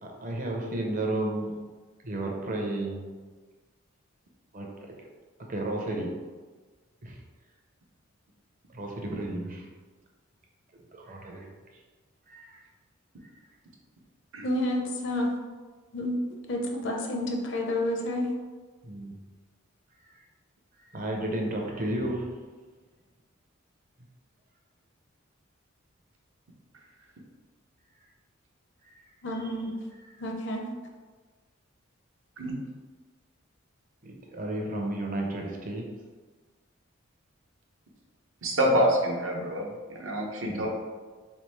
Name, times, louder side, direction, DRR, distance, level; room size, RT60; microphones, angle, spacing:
voice 1, 0.0-1.5 2.0-3.0 4.5-4.7 5.5-6.1 7.0-7.2 8.7-9.7 10.9-11.5 11.7-11.8 12.3-12.6 18.8-19.2 20.1-20.2 20.8-22.3 28.8-29.0 29.3-29.6 29.9-30.2 34.0-35.9 40.5-40.7, right 1 dB, 40° right, 0 dB, 0.6 m, -33 dB
voice 2, 14.4-15.3 15.9-16.2 16.5-18.3 29.2-29.8 30.2-30.7, left 1 dB, 60° left, 2 dB, 0.6 m, -29 dB
voice 3, 38.4-40.7, equal, 70° right, -1 dB, 0.7 m, -26 dB
3.5 x 3.3 x 3.1 m, 1.4 s
head